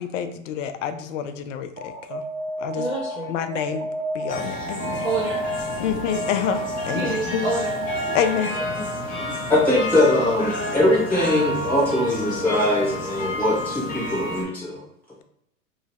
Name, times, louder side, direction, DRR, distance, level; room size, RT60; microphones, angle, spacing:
voice 1, 0.0-2.2 2.6-2.9 3.3-3.9 4.1-5.0 5.8-7.5 8.1-8.5, left 8 dB, 65° left, 9 dB, 0.5 m, -27 dB
Alarm, 1.8-8.8, right 1 dB, 70° right, 0.7 m, -32 dB
voice 2, 2.8-3.4 5.0-5.4 5.7-6.0 6.9-8.6 9.2-9.3 10.4-10.8, right 3 dB, 25° right, -10 dB, 1.1 m, -30 dB
sound 1, 4.3-14.4, left 1 dB, 20° left, 0.7 m, -30 dB
voice 3, 9.5-14.8, left 1 dB, 5° left, -8 dB, 1.2 m, -21 dB
2.7 x 2.7 x 3.0 m, 0.80 s
hypercardioid pair, 110°, 41 cm